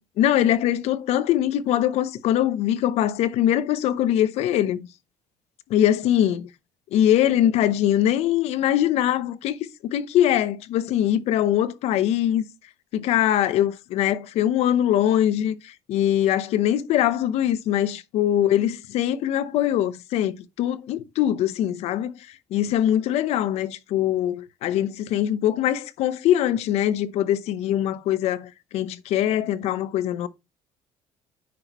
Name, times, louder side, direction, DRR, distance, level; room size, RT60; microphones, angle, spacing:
voice 1, 0.2-4.9 5.7-6.5 6.9-9.6 9.8-12.4 12.9-22.1 22.5-30.3, left 11 dB, 65° left, 0.8 m, -22 dB
9.5 x 6.0 x 3.0 m
cardioid pair, 165°, 12 cm